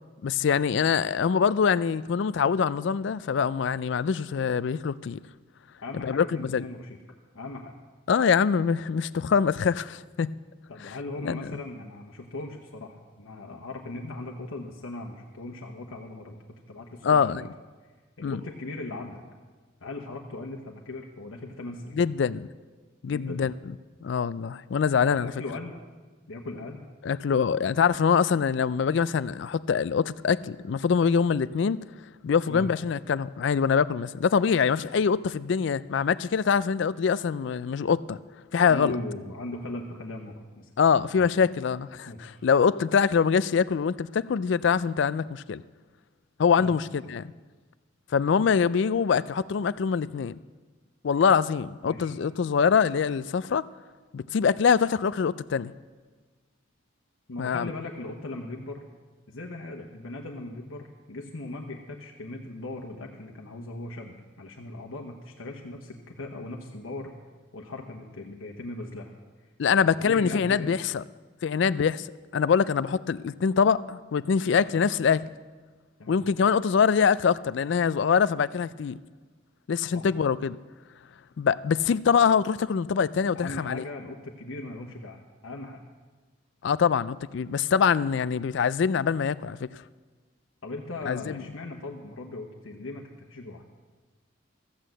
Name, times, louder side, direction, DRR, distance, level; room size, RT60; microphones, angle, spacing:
voice 1, 0.2-5.2 5.9-6.6 8.1-10.3 10.8-11.0 11.2-11.6 17.0-17.5 18.2-18.4 21.9-22.5 23.0-23.5 24.0-25.3 27.0-31.8 32.2-38.2 38.5-38.9 40.8-45.6 46.4-47.3 48.1-50.4 51.0-53.6 54.1-55.7 57.4-57.7 69.6-71.0 71.4-72.1 72.3-75.2 76.1-79.0 79.7-80.6 81.4-83.8 86.6-89.8 91.1-91.4, left 6 dB, 60° left, 0.3 m, -24 dB
voice 2, 5.8-7.0 7.3-7.7 10.7-17.5 18.2-19.2 19.8-22.0 23.1-23.4 25.1-25.8 26.3-26.9 32.5-32.7 38.7-40.7 42.1-42.4 46.6-46.7 47.0-47.2 51.8-52.1 57.3-58.8 59.3-67.1 67.5-69.1 69.4-69.5 69.8-70.8 76.0-76.2 79.9-80.1 83.3-85.8 90.6-93.6, left 2 dB, 90° left, 1.1 m, -38 dB
14.5 x 8.3 x 7.7 m
head